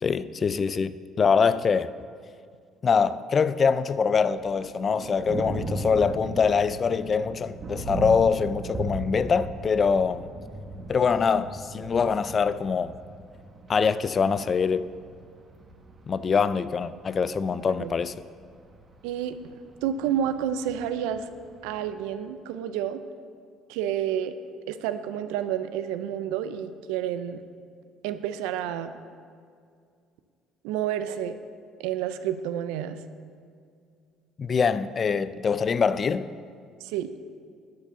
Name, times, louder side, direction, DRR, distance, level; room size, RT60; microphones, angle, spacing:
voice 1, 0.0-1.9 2.8-10.3 10.9-13.0 13.7-14.9 16.1-18.1 34.4-36.3, left 5 dB, 40° left, 0.3 m, -24 dB
Thunder, 4.1-22.0, right 2 dB, 35° right, 1.1 m, -38 dB
voice 2, 19.0-19.6 19.8-21.3 21.6-23.0 23.7-24.3 24.7-27.4 28.0-28.9 30.6-31.4 31.8-33.0 36.8-37.1, right 10 dB, 90° right, 0.5 m, -29 dB
10.5 x 4.9 x 6.8 m
supercardioid pair, 85°, 0 cm